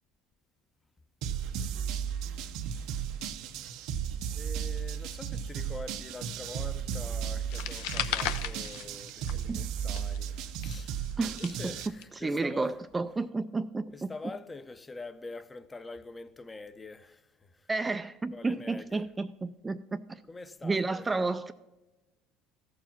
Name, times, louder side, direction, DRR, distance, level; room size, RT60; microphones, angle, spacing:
sound 1, 1.2-11.9, right 8 dB, 70° right, 0.6 m, -35 dB
voice 1, 3.4-3.8 4.3-11.1 11.4-12.7 13.9-17.7 18.3-19.0 20.3-21.1, left 3 dB, 20° left, 0.6 m, -45 dB
sound 2, 7.5-9.5 9.8-12.0, left 11 dB, 80° left, 0.6 m, -36 dB
voice 2, 11.2-11.7 12.1-14.1 17.7-20.2 20.6-21.5, right 3 dB, 15° right, 0.3 m, -31 dB
14.0 x 4.7 x 5.7 m
supercardioid pair, 110°, 0 cm